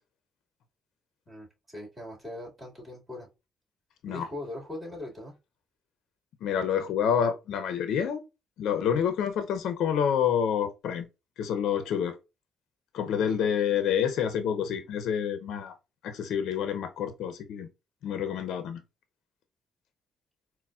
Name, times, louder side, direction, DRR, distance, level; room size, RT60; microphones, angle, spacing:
voice 1, 1.3-3.3 4.1-5.3 13.4-13.6, left 1 dB, 15° right, 1.9 m, -41 dB
voice 2, 6.4-8.2 8.6-11.1 11.4-12.1 12.9-15.7 16.0-17.7 18.0-18.8, left 8 dB, 80° left, 0.5 m, -28 dB
4.0 x 2.0 x 2.3 m
cardioid pair, 90°, 0 cm